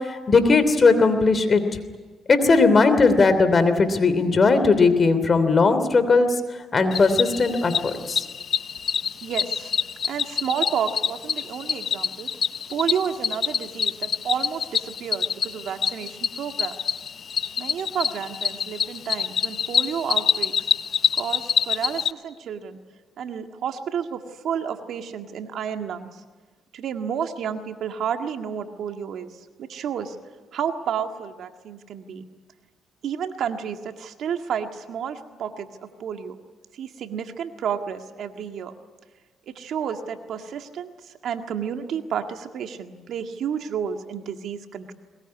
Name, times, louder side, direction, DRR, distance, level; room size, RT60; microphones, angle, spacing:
voice 1, 0.0-1.6 2.3-6.3 6.7-8.2, left 4 dB, 40° left, 10 dB, 3.0 m, -18 dB
Cricket, 6.9-22.1, left 7 dB, 55° left, 0.7 m, -26 dB
voice 2, 9.2-9.7 10.1-12.3 12.7-16.8 17.6-20.7 21.1-22.8 23.2-26.2 26.7-29.3 29.6-30.2 30.5-32.3 33.0-36.4 36.7-38.7 39.5-44.9, right 8 dB, 70° right, 6 dB, 1.8 m, -31 dB
21.5 x 21.0 x 9.7 m, 1.3 s
cardioid pair, 90°, 0 cm